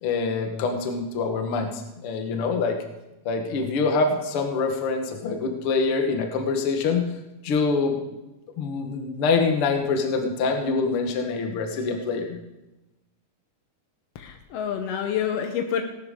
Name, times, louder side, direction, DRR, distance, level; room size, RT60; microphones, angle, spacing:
voice 1, 0.0-2.8 3.3-7.0 7.4-8.0 8.6-12.4, left 4 dB, 55° left, 4 dB, 1.7 m, -25 dB
voice 2, 14.1-15.8, left 8 dB, 80° left, 5 dB, 1.4 m, -28 dB
17.5 x 12.0 x 3.7 m, 1.0 s
omnidirectional pair, 4.0 m